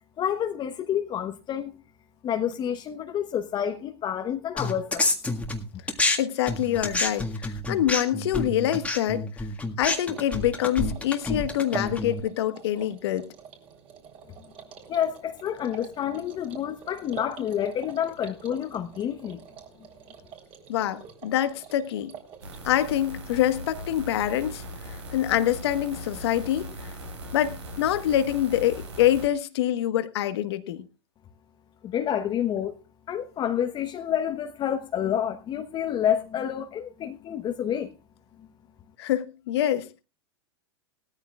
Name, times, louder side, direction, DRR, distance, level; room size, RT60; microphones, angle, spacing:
voice 1, 0.2-1.8 2.2-5.1 14.9-19.4 31.8-32.7 33.1-37.9 38.4-38.5, left 9 dB, 35° left, 1.1 m, -29 dB
sound 1, 4.6-6.2 6.5-12.2, left 2 dB, 10° left, 1.8 m, -28 dB
voice 2, 6.2-9.3 9.8-13.3 20.7-22.1 22.6-26.7 27.3-30.8 39.0-40.0, left 12 dB, 70° left, 1.4 m, -25 dB
sound 2, 9.8-23.0, right 7 dB, 40° right, 3.8 m, -45 dB
sound 3, 22.4-29.3, equal, 85° right, 6.2 m, -39 dB
19.0 x 13.5 x 2.4 m
hypercardioid pair, 100°, 14 cm